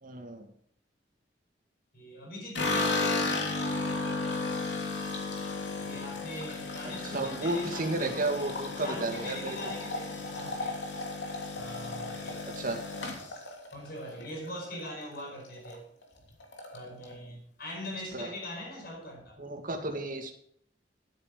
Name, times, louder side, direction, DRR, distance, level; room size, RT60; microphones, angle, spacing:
voice 1, 0.0-0.5 6.8-9.7 12.6-12.8 18.1-18.3 19.4-20.3, right 2 dB, 50° right, 3 dB, 2.1 m, -33 dB
voice 2, 1.9-3.6 5.8-10.8 11.5-12.4 13.7-15.9 16.7-19.4, left 1 dB, 60° left, 0 dB, 5.1 m, -42 dB
sound 1, 2.5-14.8 15.1-15.8 16.0-16.1 16.4-17.1, left 3 dB, 75° left, 3.0 m, -34 dB
12.5 x 9.3 x 5.2 m, 0.64 s
head